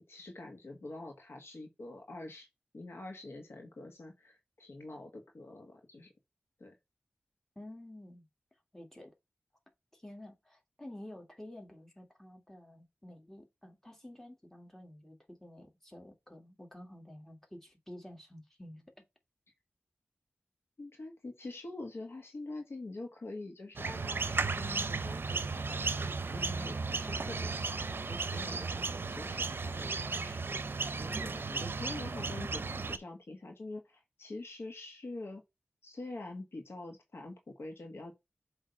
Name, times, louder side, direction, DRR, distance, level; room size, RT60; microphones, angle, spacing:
voice 1, 0.0-2.5 2.7-6.1 6.6-6.7 20.8-30.4 31.0-35.4 35.8-38.1, left 2 dB, 75° left, 1.7 m, -45 dB
voice 2, 7.6-8.3 8.7-9.1 9.9-18.9, left 1 dB, 10° left, 2.0 m, -50 dB
sound 1, 23.8-33.0, right 4 dB, 60° right, 0.6 m, -35 dB
7.7 x 3.3 x 5.4 m
cardioid pair, 55°, 4 cm